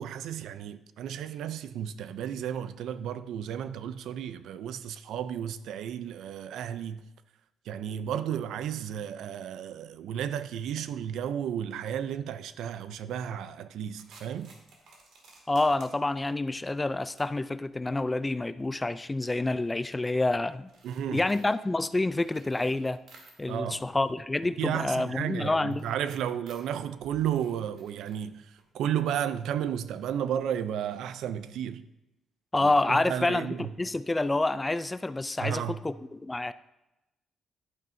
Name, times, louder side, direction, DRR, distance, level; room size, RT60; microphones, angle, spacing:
voice 1, 0.0-7.0 7.7-14.5 20.8-21.3 23.5-23.9 24.6-31.8 32.6-33.7 35.4-35.8, right 9 dB, 90° right, 0.5 m, -33 dB
sound 1, 13.9-23.7 24.1-29.5, right 3 dB, 75° right, 2.2 m, -59 dB
voice 2, 15.5-20.7 21.1-23.0 23.4-25.9 32.5-36.5, left 2 dB, 15° left, 0.3 m, -28 dB
11.0 x 8.8 x 2.6 m
cardioid pair, 125°, 0 cm